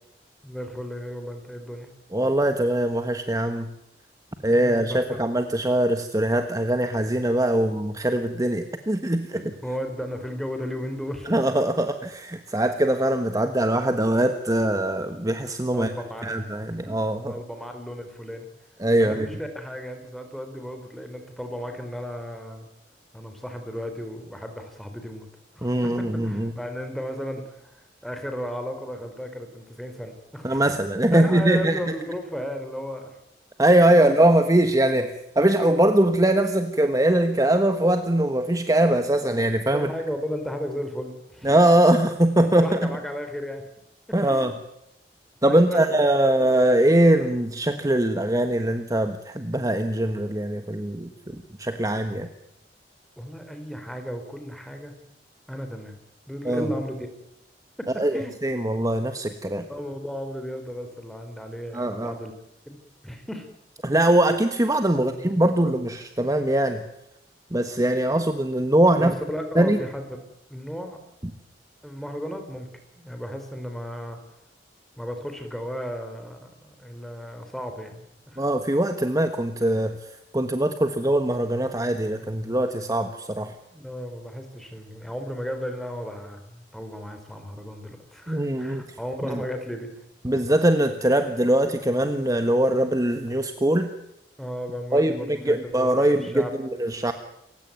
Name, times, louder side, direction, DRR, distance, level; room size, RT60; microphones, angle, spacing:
voice 1, 0.4-1.9 4.5-5.5 9.3-11.4 15.7-16.4 16.7-16.8 17.3-18.5 19.0-22.7 23.1-25.3 25.6-27.8 28.0-30.8 31.1-33.1 34.0-34.1 35.0-35.1 39.7-41.6 42.6-43.6 44.3-44.5 45.4-46.0 53.2-54.9 55.5-56.0 56.3-57.1 57.9-58.3 59.7-62.3 62.7-63.5 65.0-65.8 69.0-71.0 71.8-72.7 72.9-74.2 75.0-78.5 83.7-89.9 94.4-96.5, equal, ahead, 6 dB, 4.2 m, -35 dB
voice 2, 2.1-3.7 4.4-9.4 11.3-15.9 16.2-17.3 18.8-19.3 25.6-26.5 30.4-31.8 33.6-39.9 41.4-42.9 44.1-44.5 45.4-52.3 56.4-56.7 58.0-59.7 61.7-62.1 63.8-66.9 67.5-69.1 69.5-69.8 78.4-80.0 80.3-83.5 88.3-88.8 89.3-89.4 90.2-93.9 94.9-97.1, right 1 dB, 20° right, 8 dB, 1.3 m, -22 dB
28.5 x 16.5 x 9.4 m, 0.82 s
head